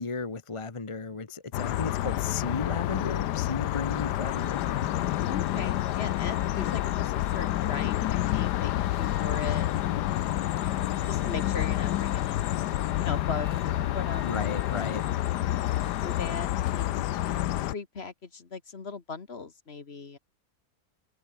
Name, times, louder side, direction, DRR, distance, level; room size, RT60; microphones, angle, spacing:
voice 1, 0.0-5.1 14.2-15.0 15.6-16.0, left 4 dB, 25° left, 0.9 m, -35 dB
sound 1, 1.5-17.7, left 14 dB, 80° left, 1.3 m, -28 dB
sound 2, 4.3-16.4, right 2 dB, 65° right, 5.8 m, -52 dB
voice 2, 5.2-10.0 10.6-12.5 13.0-14.5 15.6-20.2, left 4 dB, 40° left, 1.7 m, -39 dB
omnidirectional pair, 1.8 m